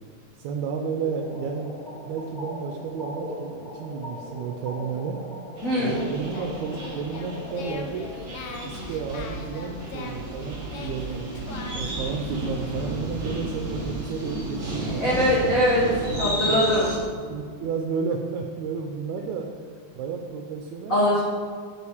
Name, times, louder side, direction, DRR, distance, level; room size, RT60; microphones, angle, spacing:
voice 1, 0.4-1.7 2.1-5.2 5.8-8.1 8.6-11.3 11.7-15.2 16.1-16.7 17.3-19.5 19.9-21.0, right 5 dB, 80° right, 3 dB, 1.9 m, -32 dB
sound 1, 1.0-7.7, left 1 dB, 25° left, 1.1 m, -39 dB
voice 2, 5.6-6.0 14.8-16.9 20.9-21.2, equal, 90° left, -6 dB, 0.7 m, -22 dB
sound 2, 5.6-17.0, right 1 dB, 40° right, 2.3 m, -33 dB
Singing, 5.8-12.0, left 4 dB, 70° left, 1.4 m, -41 dB
8.3 x 6.9 x 4.8 m, 2.1 s
omnidirectional pair, 3.5 m